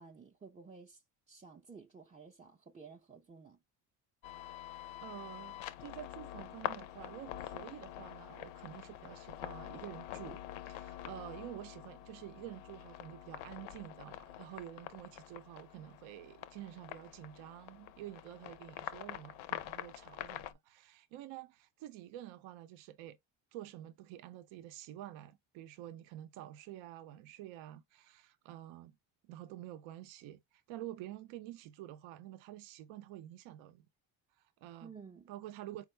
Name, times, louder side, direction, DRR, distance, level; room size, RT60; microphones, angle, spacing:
voice 1, 0.0-3.6 34.8-35.3, right 5 dB, 15° right, 0.4 m, -54 dB
sound 1, 4.2-20.5, left 12 dB, 80° left, 0.6 m, -46 dB
voice 2, 5.0-23.2 23.5-29.0 29.2-33.9 34.4-34.9 35.3-35.8, right 13 dB, 80° right, 0.6 m, -49 dB
4.5 x 2.0 x 3.1 m
cardioid pair, 95°, 47 cm